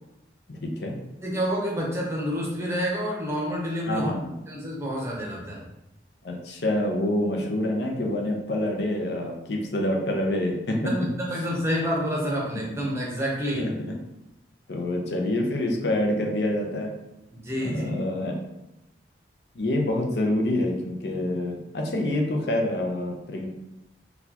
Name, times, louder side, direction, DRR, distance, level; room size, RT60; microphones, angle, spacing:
voice 1, 0.5-1.0 3.9-4.3 6.2-10.8 12.7-12.8 13.6-13.7 14.7-16.9 17.6-18.4 19.5-23.5, left 1 dB, 70° left, 1 dB, 0.6 m, -27 dB
voice 2, 1.2-4.1 4.5-5.6 10.7-13.7 17.4-18.0, equal, 15° right, -3 dB, 0.7 m, -28 dB
4.0 x 2.3 x 2.8 m, 0.91 s
head